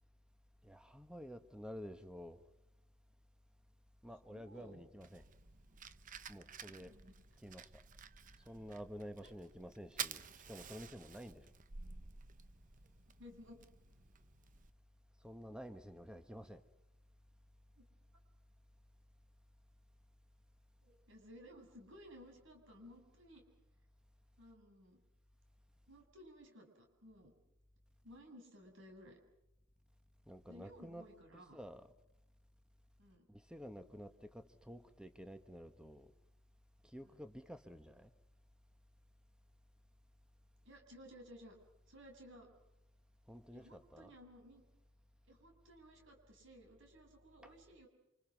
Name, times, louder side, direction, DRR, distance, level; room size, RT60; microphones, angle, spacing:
voice 1, 0.6-2.4 4.0-5.2 6.3-7.0 7.4-7.8 8.4-11.5 15.2-16.6 30.3-31.9 33.3-36.1 36.8-38.1 43.3-44.1 47.4-47.5, equal, 5° right, 1.5 m, -51 dB
voice 2, 4.3-4.9 6.7-7.1 9.2-9.3 13.2-13.6 17.8-17.9 20.8-23.4 24.4-25.0 25.9-27.3 28.0-29.2 30.5-31.6 33.0-33.3 37.0-37.2 40.6-41.5 41.9-42.5 43.5-44.6 45.3-47.9, equal, 60° right, 7.2 m, -57 dB
Fire, 5.0-14.7, right 7 dB, 40° right, 1.0 m, -51 dB
29.5 x 27.0 x 6.1 m
head